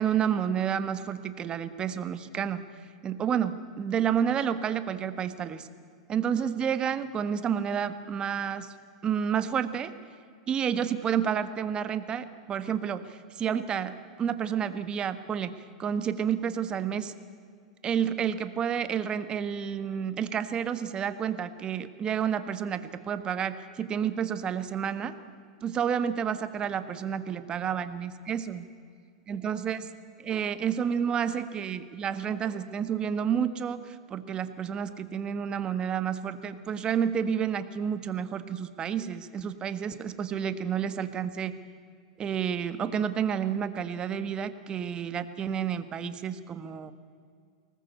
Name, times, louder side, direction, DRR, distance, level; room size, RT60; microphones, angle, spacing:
voice 1, 0.0-2.6 3.0-5.7 6.1-8.7 9.0-9.9 10.5-15.5 15.8-17.1 17.8-25.1 25.6-28.7 29.3-29.8 30.2-41.5 42.2-46.9, right 8 dB, 25° right, 11 dB, 1.5 m, -30 dB
24.0 x 19.0 x 8.3 m, 2.1 s
hypercardioid pair, 125°, 3 cm